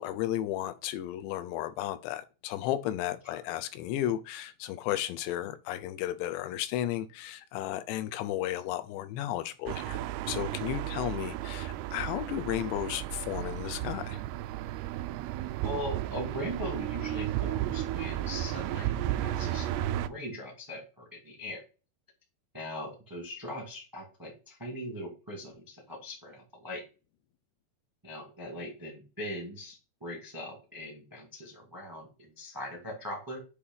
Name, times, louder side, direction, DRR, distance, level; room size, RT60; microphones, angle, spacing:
voice 1, 0.0-14.2, left 13 dB, 90° left, 2.9 m, -34 dB
sound 1, 9.7-20.1, right 13 dB, 85° right, 2.3 m, -34 dB
voice 2, 15.6-21.6 22.5-26.8 28.0-33.4, equal, 20° right, 0.5 m, -40 dB
8.3 x 2.9 x 5.5 m
omnidirectional pair, 4.9 m